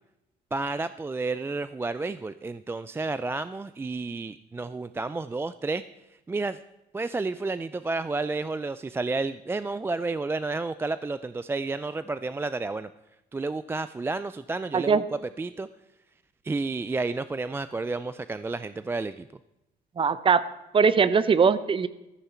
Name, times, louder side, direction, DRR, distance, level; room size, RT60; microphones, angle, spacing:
voice 1, 0.5-5.8 6.3-6.6 6.9-12.9 13.3-15.0 15.4-15.7 16.4-19.2, right 3 dB, 15° right, 13 dB, 0.3 m, -31 dB
voice 2, 20.0-20.4 20.7-21.9, right 5 dB, 30° right, 15 dB, 0.8 m, -21 dB
14.0 x 13.5 x 4.4 m, 0.93 s
cardioid pair, 110°, 17 cm